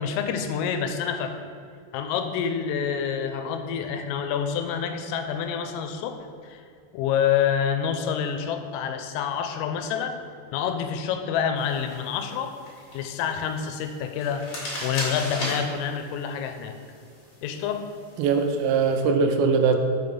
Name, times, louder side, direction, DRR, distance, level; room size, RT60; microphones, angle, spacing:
voice 1, 0.0-1.4 1.9-6.2 6.4-6.6 6.9-10.2 10.5-12.5 12.9-14.4 14.8-16.7 17.4-17.9 19.7-19.8, left 7 dB, 85° left, 7 dB, 3.2 m, -27 dB
sound 1, 11.6-19.0, left 1 dB, 55° left, 1.6 m, -38 dB
voice 2, 18.2-19.8, right 5 dB, 85° right, 5 dB, 3.3 m, -21 dB
6.9 x 6.1 x 5.3 m, 2.3 s
omnidirectional pair, 5.9 m